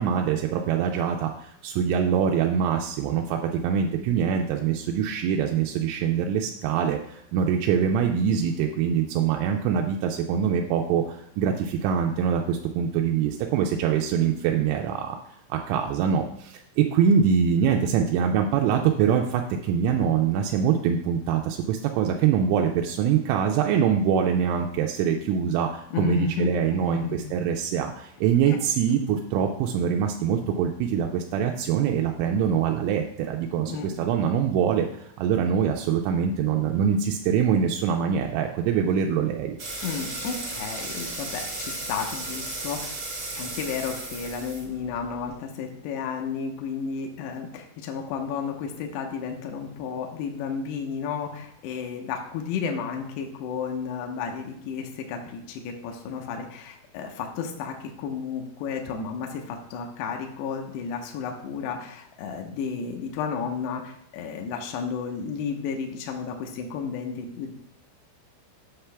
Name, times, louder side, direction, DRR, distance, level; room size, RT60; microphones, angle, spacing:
voice 1, 0.0-15.2 15.5-39.6, right 7 dB, 90° right, 2 dB, 3.1 m, -24 dB
voice 2, 25.9-27.3 28.5-28.6 33.7-33.9 39.8-43.0 43.3-67.5, left 6 dB, 80° left, 2 dB, 2.5 m, -32 dB
sound 1, 39.6-45.3, right 2 dB, 55° right, 1.4 m, -35 dB
8.1 x 5.8 x 3.3 m, 0.74 s
omnidirectional pair, 5.5 m